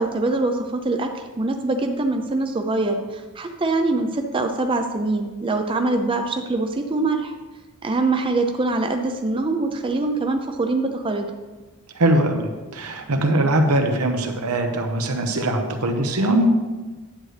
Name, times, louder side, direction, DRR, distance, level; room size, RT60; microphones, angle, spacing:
voice 1, 0.0-7.3 7.8-11.3, right 2 dB, 25° right, 4 dB, 0.5 m, -23 dB
voice 2, 11.9-16.5, right 1 dB, 80° right, 4 dB, 1.0 m, -21 dB
10.5 x 7.8 x 3.3 m, 1.3 s
head